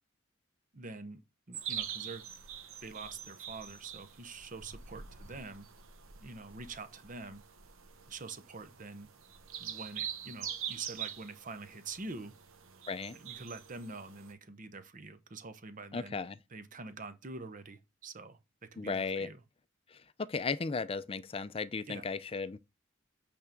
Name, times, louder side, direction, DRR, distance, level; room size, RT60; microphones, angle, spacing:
voice 1, 0.7-1.2 1.5-2.2 2.8-5.7 6.2-7.4 8.1-9.1 9.6-12.3 13.1-16.2 16.5-19.4 21.9-22.1, right 3 dB, 40° right, 0.8 m, -45 dB
sound 1, 1.5-14.3, right 9 dB, 90° right, 1.0 m, -44 dB
voice 2, 15.9-16.4 18.8-19.3 19.9-22.6, left 4 dB, 30° left, 0.5 m, -35 dB
8.5 x 3.5 x 5.1 m
head